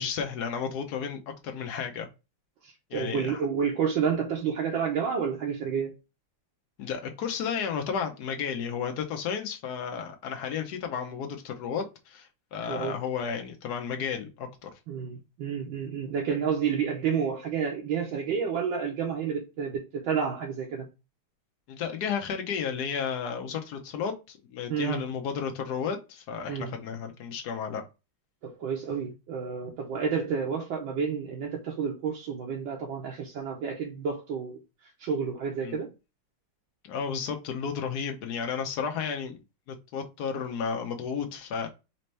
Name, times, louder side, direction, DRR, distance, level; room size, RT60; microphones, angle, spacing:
voice 1, 0.0-2.1 2.9-3.4 6.8-14.7 21.7-27.8 35.6-35.8 36.8-39.4 39.7-41.7, left 6 dB, 65° left, 1.1 m, -33 dB
voice 2, 2.9-5.9 12.7-13.0 14.9-20.9 24.7-25.0 26.5-26.7 28.4-34.6 35.0-35.9, right 6 dB, 75° right, 1.4 m, -30 dB
4.2 x 2.8 x 3.2 m
omnidirectional pair, 2.2 m